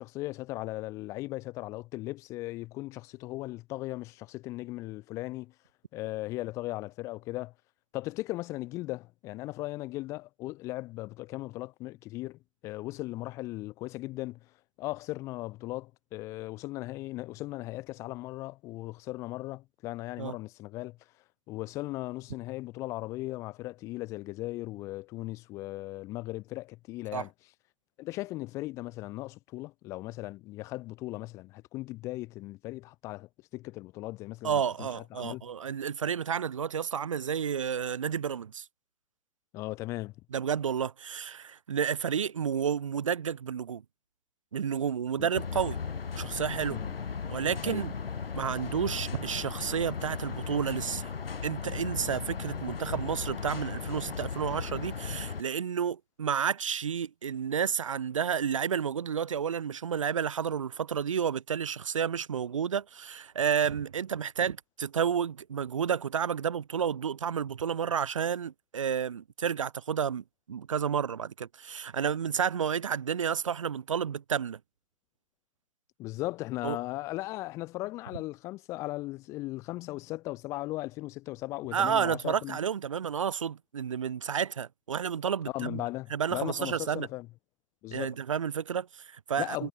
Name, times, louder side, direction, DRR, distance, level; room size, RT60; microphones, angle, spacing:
voice 1, 0.0-5.5 5.9-7.5 7.9-14.4 14.8-21.0 21.5-27.3 28.0-35.4 39.5-40.1 45.2-45.3 46.7-46.9 47.6-47.8 76.0-82.6 85.5-87.3 87.8-88.2 89.4-89.7, left 18 dB, 10° left, 4.3 m, -37 dB
voice 2, 34.4-38.7 40.3-43.8 44.5-45.8 46.1-46.8 47.3-47.9 48.3-51.1 51.4-74.6 76.6-76.8 81.7-85.8 86.1-87.1 87.9-89.7, right 7 dB, 30° right, 2.3 m, -31 dB
sound 1, 45.3-55.4, left 6 dB, 65° left, 2.0 m, -36 dB
hypercardioid pair, 180°, 30 cm